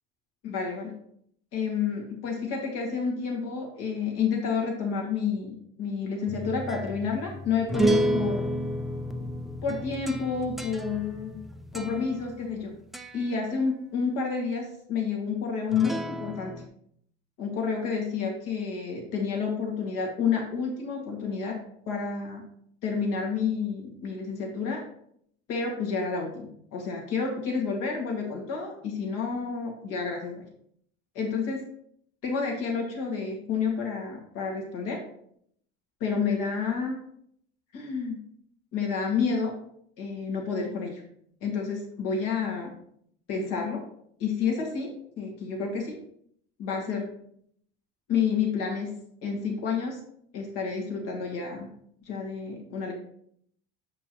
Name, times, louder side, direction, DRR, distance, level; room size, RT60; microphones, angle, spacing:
voice 1, 0.4-1.0 1.5-8.5 9.6-11.4 11.7-12.8 13.1-16.5 17.4-21.6 21.9-22.4 22.8-24.8 25.5-30.4 31.1-31.6 32.2-35.0 36.0-37.0 37.7-38.2 38.7-39.5 40.0-41.0 41.4-42.7 43.3-43.8 44.2-46.0 46.6-47.1 48.1-48.9 49.2-50.0 50.3-51.7 52.1-52.9, left 5 dB, 65° left, 0 dB, 2.2 m, -30 dB
sound 1, 6.3-12.6 12.9-13.3 15.7-16.7, right 1 dB, ahead, 0.4 m, -31 dB
7.2 x 5.2 x 3.1 m, 0.68 s
hypercardioid pair, 80°, 34 cm